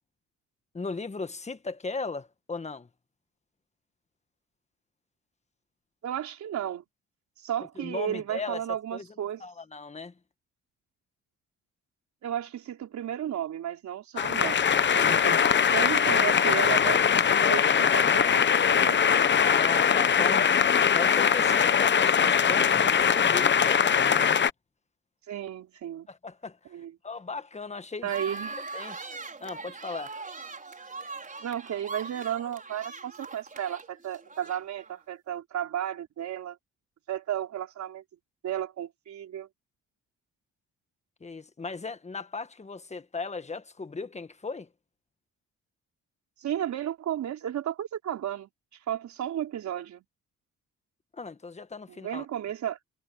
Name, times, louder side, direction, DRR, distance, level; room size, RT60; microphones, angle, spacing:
voice 1, 0.7-2.9 7.8-8.6 8.9-10.2 14.1-14.6 15.0-15.3 19.4-20.4 20.9-24.4 26.1-26.8 27.0-28.1 28.7-29.1 29.4-30.1 41.2-44.7 51.1-52.3, left 4 dB, 20° left, 1.6 m, -37 dB
voice 2, 6.0-6.8 7.4-9.4 12.2-14.6 14.9-15.4 15.7-17.0 17.4-19.0 25.3-26.1 26.7-26.9 28.0-28.6 31.4-36.6 37.1-38.0 38.4-39.5 46.4-48.5 48.9-50.0 51.9-52.8, right 10 dB, 70° right, 4.2 m, -33 dB
sound 1, 14.2-24.5, left 7 dB, 40° left, 1.0 m, -22 dB
sound 2, 28.1-35.0, right 3 dB, 25° right, 5.8 m, -41 dB
cardioid pair, 90°, 30 cm